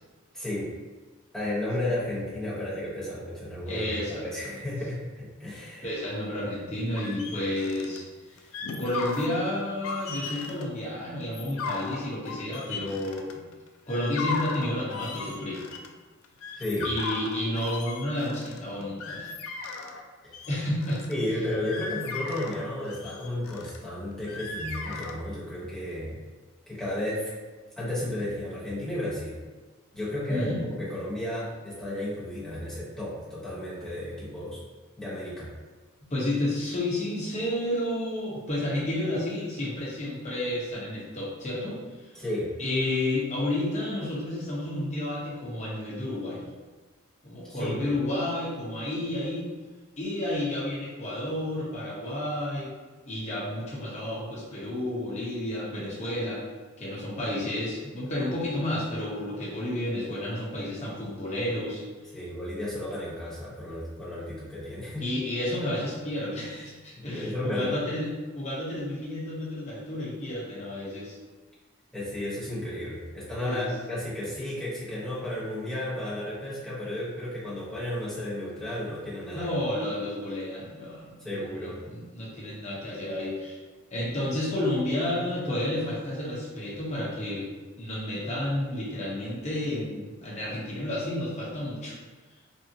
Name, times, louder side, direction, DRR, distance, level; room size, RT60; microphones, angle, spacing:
voice 1, 0.3-0.7 1.3-6.0 16.5-16.9 20.2-20.3 21.1-26.2 26.7-27.3 27.8-29.4 29.9-30.5 30.8-34.6 35.0-35.5 42.1-42.5 47.4-47.8 62.1-65.1 66.9-67.8 71.9-79.5 81.2-81.8, left 1 dB, 5° left, -9 dB, 0.9 m, -33 dB
voice 2, 3.7-4.6 5.8-8.5 8.8-13.4 13.9-15.7 16.8-19.3 20.5-21.0 30.3-30.6 36.1-42.1 42.6-46.4 47.2-49.5 50.0-52.7 53.0-56.4 56.8-61.8 65.0-68.1 68.4-71.2 73.4-73.7 79.3-83.6 83.9-87.5 87.8-92.0, left 1 dB, 35° left, -6 dB, 0.8 m, -31 dB
sound 1, 7.0-8.0 8.4-9.3 9.7-10.6 11.2-13.5 13.9-15.9 16.2-20.0 20.3-21.1 21.5-23.8 24.3-25.1, left 4 dB, 75° left, 0.3 m, -36 dB
3.6 x 2.0 x 2.7 m, 1.3 s
head